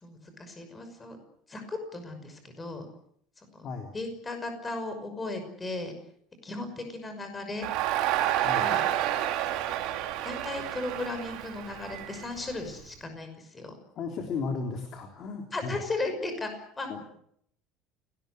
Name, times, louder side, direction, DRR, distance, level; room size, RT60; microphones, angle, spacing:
voice 1, 0.0-1.2 1.5-2.9 3.5-3.7 3.9-5.9 6.4-7.7 8.6-8.8 10.2-13.8 15.5-17.0, left 2 dB, 15° left, 7 dB, 5.8 m, -36 dB
voice 2, 3.6-3.9 8.4-8.7 14.0-15.8 16.9-17.0, left 4 dB, 35° left, 3 dB, 3.5 m, -35 dB
Crowd, 7.6-12.8, right 12 dB, 55° right, 3.9 m, -29 dB
30.0 x 19.0 x 8.0 m, 0.70 s
cardioid pair, 170°, 0 cm